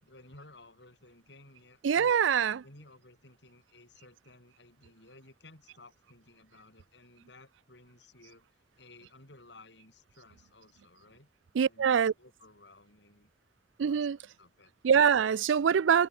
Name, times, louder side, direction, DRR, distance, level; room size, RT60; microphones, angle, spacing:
voice 1, 0.0-2.2 2.6-11.3 11.6-13.3 13.9-14.1 14.4-14.7, left 2 dB, 70° left, 7.1 m, -56 dB
voice 2, 1.8-2.6 11.5-12.1 13.8-14.2 14.8-16.1, right 7 dB, 85° right, 0.4 m, -24 dB
head